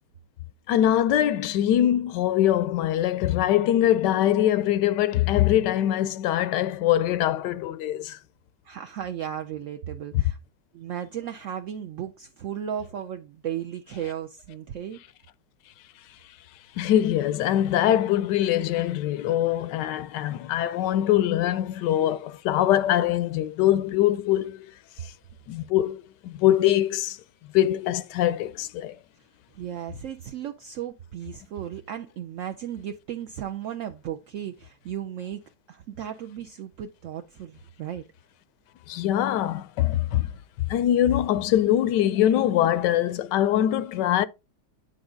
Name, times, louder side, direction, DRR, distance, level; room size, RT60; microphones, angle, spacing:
voice 1, 0.7-8.2 16.8-24.7 25.5-27.2 27.5-29.0 38.9-40.3 40.7-44.3, left 12 dB, 80° left, 1.2 m, -23 dB
voice 2, 8.6-10.4 10.7-15.0 29.6-35.4 35.7-38.0, right 10 dB, 70° right, 0.7 m, -35 dB
9.6 x 4.8 x 3.8 m
omnidirectional pair, 1.9 m